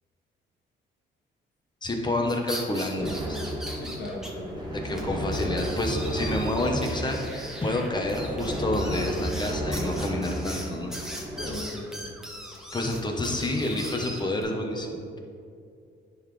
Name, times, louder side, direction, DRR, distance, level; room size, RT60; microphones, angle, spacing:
voice 1, 1.8-3.4 4.8-10.9 12.7-15.2, left 1 dB, 20° left, 2 dB, 1.1 m, -29 dB
sound 1, 2.3-4.3 4.6-4.7 5.0-5.1 5.3-14.4, equal, 5° right, 1.1 m, -40 dB
sound 2, 3.0-11.5, equal, 20° right, 1.7 m, -32 dB
voice 2, 3.8-4.6 4.8-5.1 11.3-12.1 12.8-13.0, left 2 dB, 60° left, -2 dB, 1.6 m, -39 dB
10.5 x 4.1 x 3.3 m, 2.5 s
cardioid pair, 90°, 20 cm